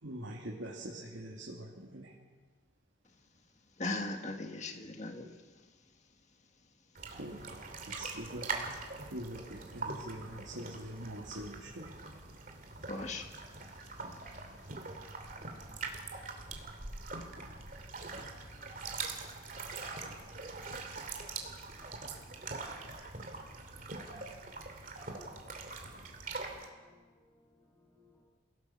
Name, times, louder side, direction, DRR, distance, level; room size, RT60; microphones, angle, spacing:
voice 1, 0.0-2.1 7.1-8.5 9.1-11.9, right 1 dB, 85° right, 2.6 m, -44 dB
voice 2, 3.8-5.3 12.9-13.4, left 2 dB, 35° left, 1.7 m, -38 dB
sound 1, 6.9-26.7, right 3 dB, 45° right, 2.6 m, -43 dB
voice 3, 24.7-25.4 25.8-28.3, left 2 dB, 15° left, 6.6 m, -68 dB
28.5 x 17.5 x 5.9 m
head